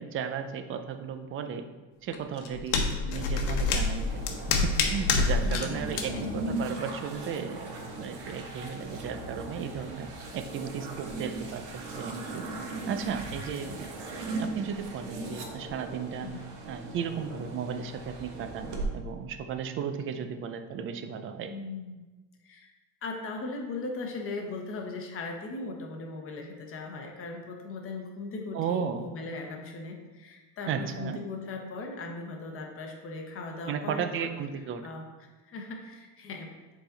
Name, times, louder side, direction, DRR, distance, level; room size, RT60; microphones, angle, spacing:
voice 1, 0.0-1.6 2.0-4.1 4.6-10.1 10.3-12.4 12.9-13.9 14.4-16.3 16.7-21.5 28.5-29.1 30.7-31.2 33.7-34.8, right 7 dB, 30° right, 8 dB, 0.4 m, -35 dB
sound 1, 2.1-5.7 5.9-6.0, left 4 dB, 80° left, 1.0 m, -27 dB
sound 2, 3.1-18.9, right 2 dB, 80° right, 1.3 m, -39 dB
voice 2, 5.4-5.9 6.1-6.2 13.6-13.7 16.2-16.5 21.5-22.1 22.4-22.7 23.0-34.3 34.8-35.0 35.5-36.5, left 3 dB, 30° left, 2 dB, 1.0 m, -38 dB
7.1 x 4.0 x 3.9 m, 1.2 s
cardioid pair, 150°, 41 cm